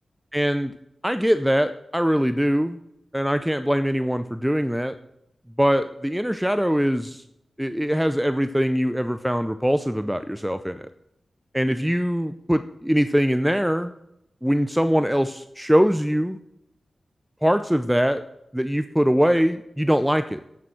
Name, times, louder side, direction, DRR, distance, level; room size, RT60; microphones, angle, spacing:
voice 1, 0.3-0.7 1.0-2.8 3.1-4.9 5.6-7.2 7.6-10.9 11.5-13.9 14.4-16.4 17.4-18.2 18.5-20.4, equal, 5° right, 10 dB, 0.5 m, -22 dB
8.7 x 6.9 x 7.7 m, 0.83 s
cardioid pair, 55°, 0 cm